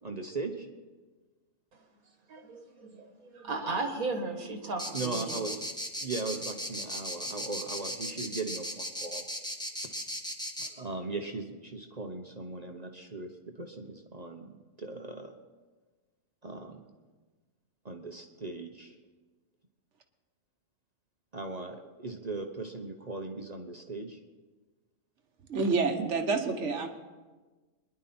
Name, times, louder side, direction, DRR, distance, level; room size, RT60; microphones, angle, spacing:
voice 1, 0.0-0.7 4.9-5.7 6.0-9.3 9.8-9.9 10.6-15.3 16.4-16.8 17.8-19.0 21.3-24.2, right 3 dB, 30° right, 4 dB, 0.9 m, -38 dB
voice 2, 2.3-5.3, right 3 dB, 70° right, 4 dB, 1.9 m, -35 dB
sound 1, 4.8-10.7, equal, 5° left, 1.2 m, -36 dB
voice 3, 25.5-26.9, right 4 dB, 50° right, 6 dB, 1.4 m, -28 dB
23.0 x 11.0 x 4.4 m, 1.3 s
omnidirectional pair, 1.6 m